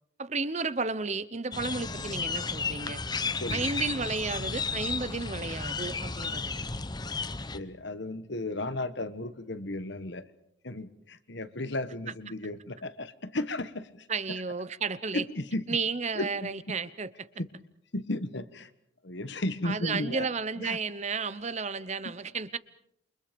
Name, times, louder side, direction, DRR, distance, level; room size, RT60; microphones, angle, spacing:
voice 1, 0.2-3.0 3.5-6.5 14.1-15.2 15.7-17.3 19.6-22.6, right 4 dB, 35° right, 16 dB, 0.9 m, -32 dB
sound 1, 1.5-7.6, left 4 dB, 20° left, 0.9 m, -33 dB
voice 2, 7.5-10.3 10.6-14.4 15.1-15.6 16.1-16.7 17.4-17.5 17.9-18.7 19.0-20.3 20.6-20.8, left 2 dB, 60° left, 13 dB, 1.4 m, -34 dB
28.5 x 24.5 x 5.2 m, 0.73 s
head